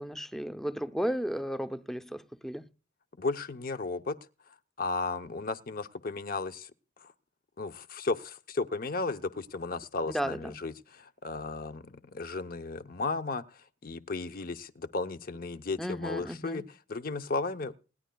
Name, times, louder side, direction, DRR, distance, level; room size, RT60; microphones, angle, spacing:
voice 1, 0.0-2.7 10.1-10.6 15.8-16.7, equal, ahead, 0.6 m, -34 dB
voice 2, 3.2-4.2 4.8-6.7 7.0-7.1 7.6-13.4 13.8-16.6 16.9-17.7, left 3 dB, 50° left, 0.8 m, -34 dB
28.5 x 10.5 x 2.3 m
head